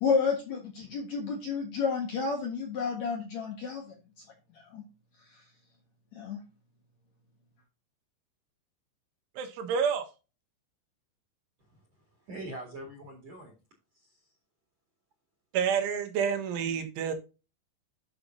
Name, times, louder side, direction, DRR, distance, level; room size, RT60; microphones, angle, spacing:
voice 1, 0.0-3.9 4.7-4.8 6.1-6.4, left 5 dB, 75° left, 1.6 m, -30 dB
voice 2, 9.4-10.0 15.5-17.1, right 7 dB, 75° right, 3.7 m, -29 dB
voice 3, 12.2-13.5 13.9-14.3, right 1 dB, 45° right, 2.3 m, -44 dB
9.5 x 6.8 x 2.7 m
omnidirectional pair, 5.8 m